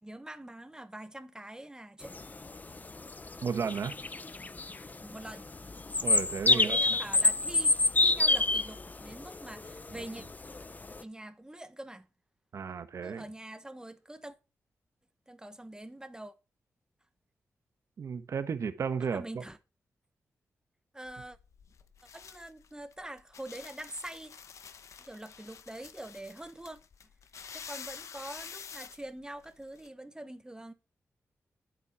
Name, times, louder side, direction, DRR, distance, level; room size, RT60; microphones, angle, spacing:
voice 1, 0.0-2.1 5.0-5.5 6.5-10.2 11.0-12.1 13.0-14.3 15.3-16.3 19.0-19.6 20.9-21.4 22.1-24.3 25.0-26.8 27.5-30.7, right 1 dB, 15° right, 1.2 m, -44 dB
sound 1, 2.0-11.0, left 3 dB, 30° left, 0.8 m, -28 dB
voice 2, 3.4-4.0 6.0-6.8 9.9-10.0 12.5-13.2 18.0-19.4, right 6 dB, 70° right, 1.3 m, -33 dB
sound 2, 21.1-29.9, left 6 dB, 75° left, 1.0 m, -48 dB
9.9 x 8.2 x 4.8 m
cardioid pair, 60°, 5 cm